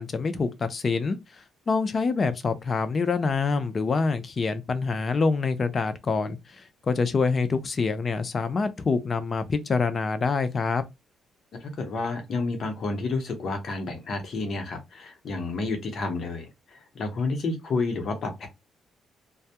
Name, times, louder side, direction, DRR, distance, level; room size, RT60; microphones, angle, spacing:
voice 1, 0.0-10.8, left 4 dB, 40° left, 0.4 m, -26 dB
voice 2, 11.5-18.5, left 3 dB, 60° left, 0.9 m, -30 dB
2.2 x 2.2 x 2.8 m
cardioid pair, 90°, 0 cm